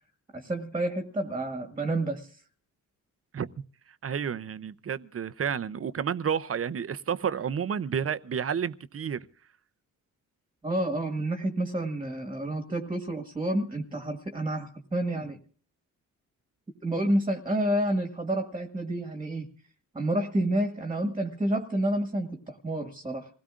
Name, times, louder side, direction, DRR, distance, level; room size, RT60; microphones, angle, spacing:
voice 1, 0.3-2.3 10.6-15.4 16.8-19.5 19.9-23.3, right 1 dB, 15° right, 1.6 m, -29 dB
voice 2, 4.0-9.3, right 7 dB, 40° right, 0.7 m, -30 dB
27.0 x 17.0 x 2.5 m
cardioid pair, 100°, 34 cm